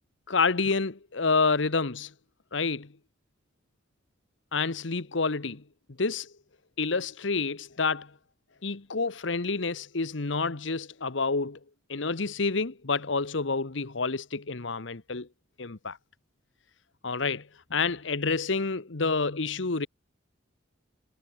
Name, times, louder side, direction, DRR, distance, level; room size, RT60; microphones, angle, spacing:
voice 1, 0.3-2.1 2.5-2.9 4.5-5.6 6.0-6.3 6.8-8.1 8.6-11.6 11.9-15.3 15.6-16.0 17.0-19.9, left 4 dB, 70° left, 1.2 m, -28 dB
head